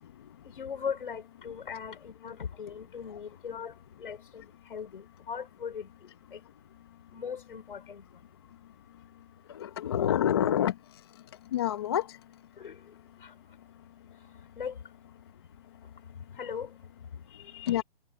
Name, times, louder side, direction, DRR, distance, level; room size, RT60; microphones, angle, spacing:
voice 1, 0.5-5.9 6.3-6.4 7.1-8.0 12.6-12.8 13.2-13.3 14.6-14.7 16.3-16.7 17.3-17.8, left 7 dB, 60° left, 5.4 m, -39 dB
voice 2, 9.5-10.7 11.5-12.1 17.7-17.8, left 10 dB, 25° left, 1.1 m, -27 dB
hypercardioid pair, 175°, 30 cm